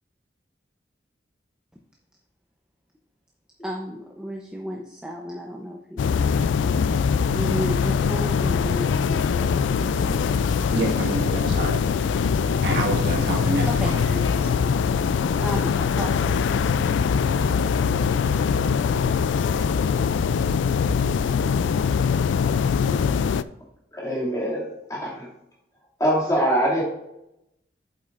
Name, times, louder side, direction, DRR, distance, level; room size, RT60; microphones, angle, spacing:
voice 1, 3.6-6.2 7.3-10.6 13.7-14.8 15.4-16.9, equal, 5° right, 0 dB, 0.7 m, -34 dB
sound 1, 6.0-23.4, left 6 dB, 80° left, 0.3 m, -22 dB
voice 2, 10.3-14.3, right 2 dB, 60° right, -1 dB, 1.6 m, -29 dB
voice 3, 23.9-25.3 26.0-26.8, right 1 dB, 20° left, -4 dB, 2.3 m, -23 dB
8.7 x 7.4 x 2.5 m, 0.86 s
head